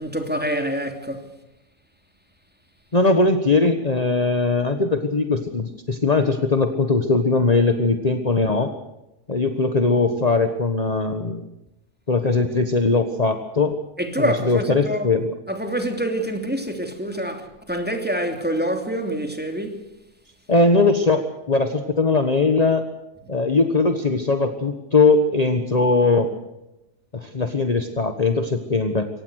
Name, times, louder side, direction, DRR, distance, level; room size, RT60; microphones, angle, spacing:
voice 1, 0.0-1.3 14.0-15.1 15.5-19.8, right 1 dB, 5° right, 3.0 m, -26 dB
voice 2, 2.9-8.7 9.3-11.4 12.1-13.8 14.2-15.3 20.5-21.2 21.5-22.8 23.3-26.3 27.1-29.1, left 3 dB, 30° left, 1.5 m, -20 dB
24.5 x 18.5 x 6.5 m
omnidirectional pair, 1.5 m